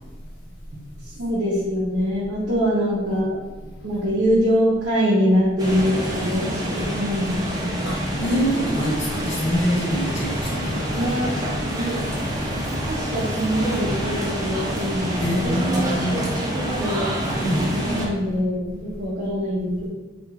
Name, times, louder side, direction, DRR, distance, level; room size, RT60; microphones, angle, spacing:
voice 1, 1.0-3.4 3.8-7.7 10.9-11.3 11.7-11.9 12.9-16.2 16.5-17.1 17.6-19.9, equal, 90° right, -10 dB, 0.7 m, -24 dB
sound 1, 5.6-18.1, equal, 20° right, 0.4 m, -27 dB
voice 2, 7.8-11.1 15.2-16.2 17.4-17.7, equal, 75° left, -4 dB, 0.9 m, -25 dB
2.9 x 2.4 x 2.4 m, 1.2 s
head